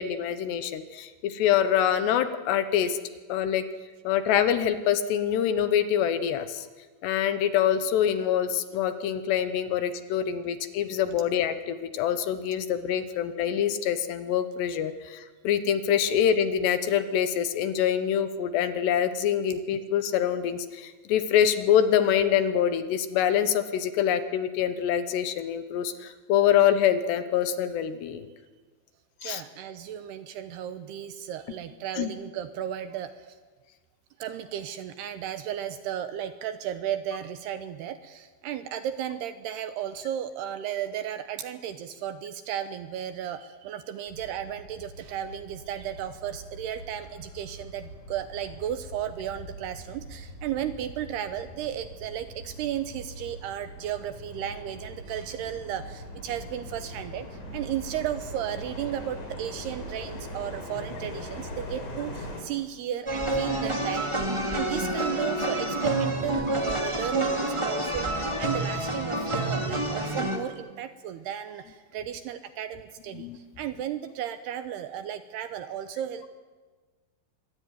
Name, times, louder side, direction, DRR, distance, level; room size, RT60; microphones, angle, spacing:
voice 1, 0.0-3.0 3.3-3.6 4.0-6.7 7.0-28.3 29.2-29.4 32.0-32.1 73.1-73.4, left 9 dB, 75° left, 11 dB, 3.0 m, -25 dB
voice 2, 29.2-33.4 34.2-76.3, right 10 dB, 75° right, 10 dB, 2.6 m, -34 dB
sound 1, 44.1-62.4, equal, 40° left, 5.5 m, -42 dB
sound 2, 63.1-70.4, right 1 dB, 10° right, 1.6 m, -28 dB
25.0 x 21.5 x 9.3 m, 1.3 s
omnidirectional pair, 5.4 m